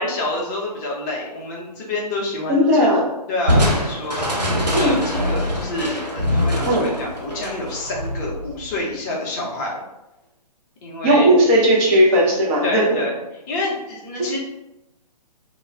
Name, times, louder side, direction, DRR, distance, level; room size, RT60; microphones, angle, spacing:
voice 1, 0.0-3.0 3.3-4.2 4.7-9.8 10.8-11.3 12.6-13.2 13.5-14.4, left 2 dB, 25° left, -3 dB, 0.6 m, -28 dB
voice 2, 2.5-3.0 4.7-5.0 6.7-6.9 11.0-13.0, equal, 20° right, -4 dB, 0.6 m, -16 dB
Crushing, 3.5-8.9, left 1 dB, 85° right, 0.7 m, -23 dB
2.2 x 2.1 x 3.3 m, 0.92 s
figure-of-eight pair, 125°, 21 cm